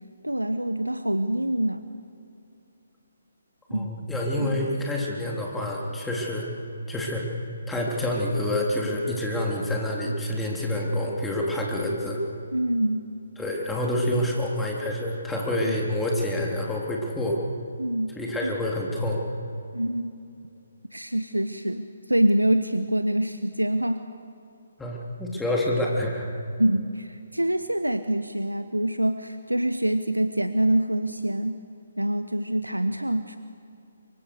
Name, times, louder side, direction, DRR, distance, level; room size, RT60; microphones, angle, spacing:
voice 1, 0.2-1.9 3.7-3.9 4.4-4.6 12.5-13.0 15.6-15.8 17.8-18.1 18.4-18.5 19.7-20.1 20.9-24.0 26.6-31.6 32.0-33.4, right 1 dB, 90° right, 10 dB, 1.0 m, -25 dB
voice 2, 3.7-6.5 6.9-7.2 7.7-12.2 13.4-17.4 18.2-19.2 24.8-26.4, left 1 dB, 5° left, -2 dB, 3.4 m, -27 dB
24.0 x 24.0 x 6.7 m, 2.6 s
figure-of-eight pair, 140°, 0 cm